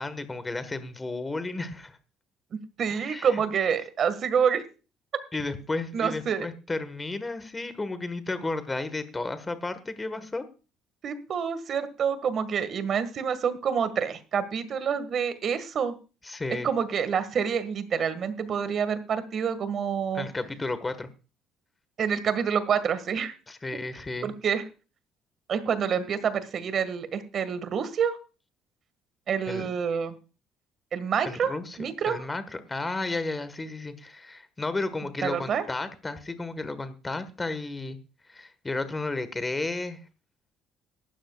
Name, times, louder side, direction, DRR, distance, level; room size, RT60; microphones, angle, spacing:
voice 1, 0.0-2.0 2.9-3.4 5.3-10.5 16.2-16.7 20.1-21.1 23.5-24.3 29.5-29.7 31.2-31.8 32.0-38.0 38.3-40.0, left 2 dB, 15° left, 12 dB, 1.5 m, -33 dB
voice 2, 2.5-4.6 5.9-6.5 11.0-15.9 16.6-20.3 22.0-23.3 24.2-24.6 25.5-28.2 29.3-30.2 30.9-31.5 31.8-32.2 35.2-35.6, right 7 dB, 45° right, 12 dB, 1.8 m, -27 dB
18.0 x 13.0 x 2.4 m, 0.34 s
cardioid pair, 130°, 0 cm